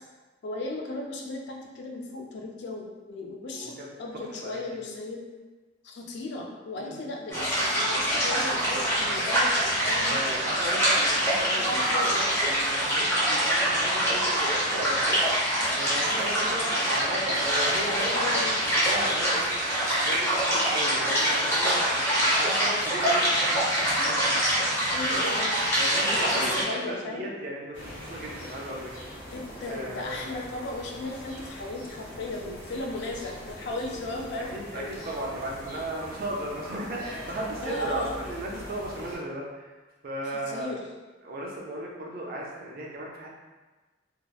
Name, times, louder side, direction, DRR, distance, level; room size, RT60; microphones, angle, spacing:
voice 1, 0.4-5.2 5.8-10.6 11.6-12.4 18.1-18.5 24.9-25.5 26.1-27.3 29.3-35.0 37.6-38.2 40.3-40.8, left 2 dB, 60° left, 0 dB, 0.4 m, -36 dB
voice 2, 3.5-3.9 4.1-4.8 6.8-7.0 9.8-15.3 15.8-18.4 18.8-19.5 20.0-24.4 24.9-25.2 25.8-28.9 29.6-30.2 34.5-39.7 40.0-40.7 41.2-43.4, right 1 dB, 50° right, -2 dB, 0.4 m, -36 dB
sound 1, 7.3-26.6, equal, 15° left, 0.7 m, -25 dB
sound 2, 27.7-39.2, equal, 90° left, 1.0 m, -42 dB
2.7 x 2.0 x 2.3 m, 1.3 s
head